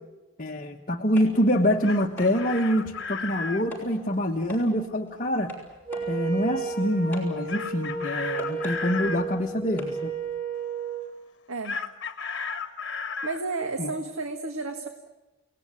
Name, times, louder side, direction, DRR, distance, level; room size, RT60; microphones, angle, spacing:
voice 1, 0.4-5.5 6.1-10.1 13.8-13.9, equal, 40° left, 1 dB, 1.3 m, -25 dB
sound 1, 1.1-10.4, equal, 10° left, 6.6 m, -46 dB
Chicken rooster, 1.6-3.7 7.5-9.2 11.6-13.4, left 5 dB, 55° left, 1.6 m, -34 dB
Wind instrument woodwind instrument, 5.9-11.1, right 5 dB, 25° right, 4.1 m, -33 dB
voice 2, 11.5-11.8 13.2-14.9, right 3 dB, 85° right, 5 dB, 1.7 m, -32 dB
29.5 x 18.5 x 9.6 m, 1.1 s
head